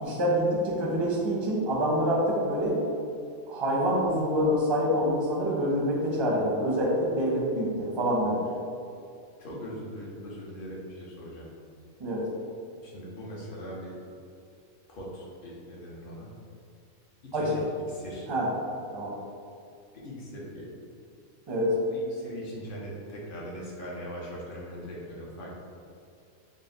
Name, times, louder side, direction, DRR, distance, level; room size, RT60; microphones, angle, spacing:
voice 1, 0.0-2.8 3.5-8.4 12.0-12.2 17.3-17.5 18.3-18.5 18.9-19.1 21.5-21.8, equal, 30° right, -4 dB, 0.5 m, -26 dB
voice 2, 9.4-11.5 12.8-14.0 14.9-16.3 17.2-17.6 17.9-18.3 19.9-20.7 21.9-25.6, equal, 50° left, -4 dB, 0.7 m, -40 dB
4.0 x 2.1 x 3.8 m, 2.4 s
omnidirectional pair, 1.4 m